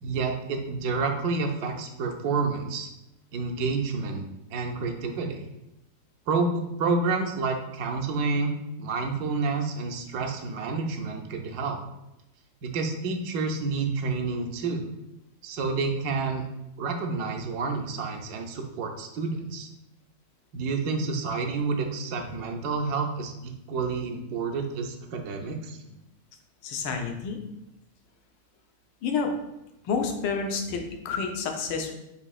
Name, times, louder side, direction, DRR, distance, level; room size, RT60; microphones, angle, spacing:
voice 1, 0.0-2.9 3.3-4.3 4.5-5.4 6.3-11.8 12.6-14.9 15.4-16.4 16.8-19.7 20.5-25.8, right 4 dB, 70° right, 4 dB, 1.0 m, -29 dB
voice 2, 26.6-27.4 29.0-29.3 29.8-31.9, left 5 dB, 90° left, 4 dB, 1.3 m, -29 dB
7.0 x 2.7 x 2.3 m, 0.90 s
omnidirectional pair, 1.9 m